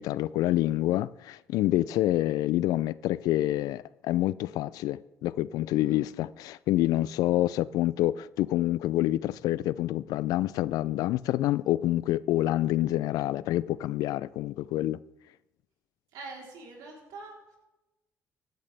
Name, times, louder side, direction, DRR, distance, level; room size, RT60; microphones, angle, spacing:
voice 1, 0.0-15.0, left 15 dB, 75° left, 0.4 m, -27 dB
voice 2, 5.7-6.1 16.1-17.6, right 3 dB, 80° right, 3.6 m, -45 dB
15.5 x 10.5 x 3.4 m
supercardioid pair, 75°, 6 cm